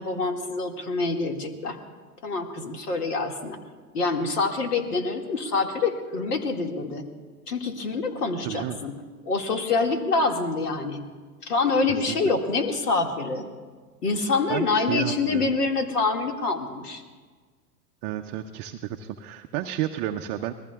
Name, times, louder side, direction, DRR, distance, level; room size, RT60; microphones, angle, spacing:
voice 1, 0.0-1.8 2.2-3.6 3.9-7.1 7.5-8.9 9.2-11.0 11.4-13.5 14.0-17.0, left 3 dB, 75° left, 4 dB, 2.1 m, -26 dB
voice 2, 8.4-8.8 12.1-12.4 14.5-15.5 18.0-20.5, right 12 dB, 30° right, 5 dB, 0.5 m, -31 dB
27.0 x 20.0 x 2.4 m, 1.5 s
figure-of-eight pair, 100°, 48 cm